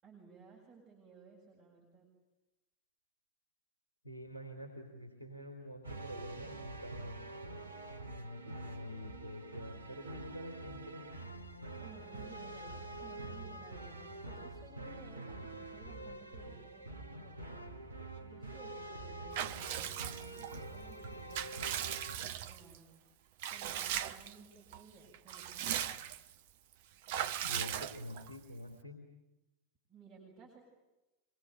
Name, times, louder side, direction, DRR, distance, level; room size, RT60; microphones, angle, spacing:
voice 1, 0.0-2.1 11.8-17.8 18.2-21.9 22.4-23.0 23.5-26.1 29.9-30.6, right 5 dB, 20° right, -3 dB, 7.1 m, -57 dB
voice 2, 4.0-7.2 8.0-11.0 27.4-29.0, left 1 dB, 80° left, 3 dB, 3.4 m, -46 dB
sound 1, 5.8-22.2, right 2 dB, 80° right, 1.6 m, -46 dB
Water / Bathtub (filling or washing) / Liquid, 19.3-20.6 21.0-22.8 23.4-24.4 24.7-24.8 25.1-26.3 27.1-28.3, right 11 dB, 50° right, 1.0 m, -38 dB
25.5 x 22.0 x 9.2 m, 1.0 s
figure-of-eight pair, 90°, 0 cm